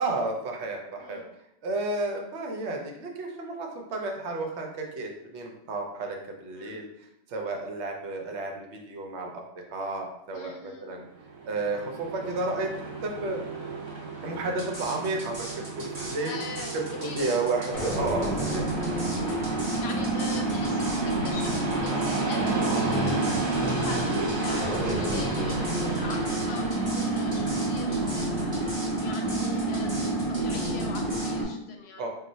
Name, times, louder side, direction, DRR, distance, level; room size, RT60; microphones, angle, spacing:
voice 1, 0.0-1.2 1.6-6.9 7.3-9.4 9.7-11.0 11.5-12.7 13.0-13.4 14.2-16.4 16.7-19.0 24.8-25.3 32.0-32.1, right 2 dB, 70° right, 1 dB, 0.9 m, -32 dB
voice 2, 1.0-1.3 6.5-6.8 10.3-11.0 14.6-14.8 16.2-17.7 18.7-19.0 19.5-29.9 30.3-32.1, left 4 dB, 70° left, 2 dB, 0.8 m, -42 dB
Train, 11.2-29.8, right 3 dB, 50° right, 0.3 m, -34 dB
sound 1, 14.6-31.3, right 1 dB, 25° right, 0.9 m, -40 dB
sound 2, 17.7-31.4, right 2 dB, 35° left, 0.7 m, -29 dB
2.4 x 2.1 x 3.9 m, 0.79 s
omnidirectional pair, 1.2 m